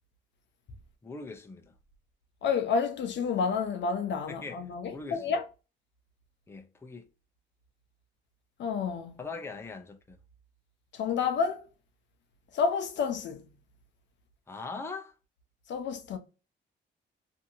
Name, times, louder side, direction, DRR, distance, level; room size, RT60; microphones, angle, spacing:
voice 1, 1.0-1.7 4.3-5.3 6.5-7.1 9.2-10.2 14.5-15.1, left 4 dB, 10° left, 0.5 m, -41 dB
voice 2, 2.4-5.4 8.6-9.2 10.9-11.7 12.5-13.4 15.7-16.2, left 5 dB, 65° left, 0.6 m, -30 dB
2.7 x 2.6 x 2.6 m
cardioid pair, 90°, 20 cm